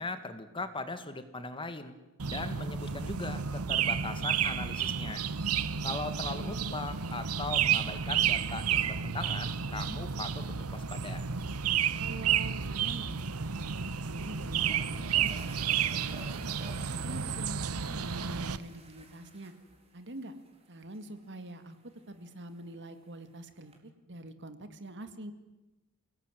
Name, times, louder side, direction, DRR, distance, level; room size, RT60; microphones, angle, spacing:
voice 1, 0.0-1.9 2.2-5.3 5.8-11.2, left 3 dB, 25° left, 10 dB, 1.9 m, -39 dB
sound 1, 2.2-18.6, right 8 dB, 85° right, 1.1 m, -31 dB
voice 2, 6.3-6.7 12.0-13.1 13.4-16.4 16.9-19.5 19.9-20.3 20.7-25.3, right 1 dB, 55° right, 10 dB, 2.2 m, -45 dB
sound 2, 12.4-12.6 12.9-13.0 14.0-14.1 14.4-23.8, right 2 dB, 30° right, 4.1 m, -54 dB
29.0 x 18.5 x 9.3 m, 1.0 s
head